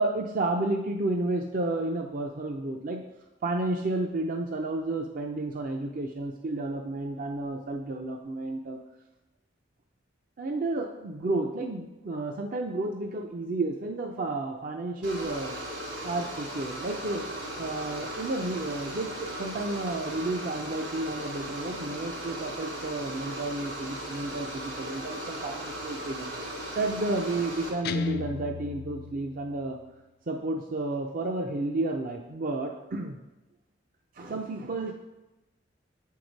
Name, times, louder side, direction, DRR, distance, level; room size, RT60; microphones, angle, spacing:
voice 1, 0.0-3.0 3.4-8.8 10.4-15.6 16.0-17.2 17.6-26.3 26.8-29.8 30.3-33.2 34.2-34.9, right 2 dB, 50° right, 3 dB, 0.5 m, -31 dB
sound 1, 15.0-27.7, right 1 dB, 75° right, 2.6 m, -37 dB
Guitar, 27.8-29.9, left 5 dB, 55° left, 0.4 m, -35 dB
7.8 x 4.7 x 5.2 m, 1.0 s
head